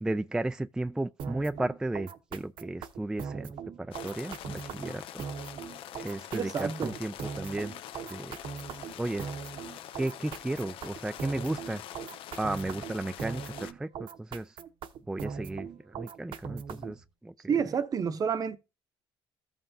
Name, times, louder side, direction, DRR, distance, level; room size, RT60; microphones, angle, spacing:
voice 1, 0.0-5.2 6.0-7.7 8.1-8.4 9.0-9.3 10.0-11.8 12.4-14.6 15.1-17.5, right 2 dB, 5° right, 0.3 m, -34 dB
sound 1, 1.2-17.1, right 6 dB, 70° right, 0.9 m, -40 dB
sound 2, 3.9-13.7, left 11 dB, 75° left, 0.6 m, -45 dB
voice 2, 6.3-7.0 17.5-18.6, right 6 dB, 40° right, 0.8 m, -29 dB
14.5 x 5.7 x 2.7 m
cardioid pair, 110°, 9 cm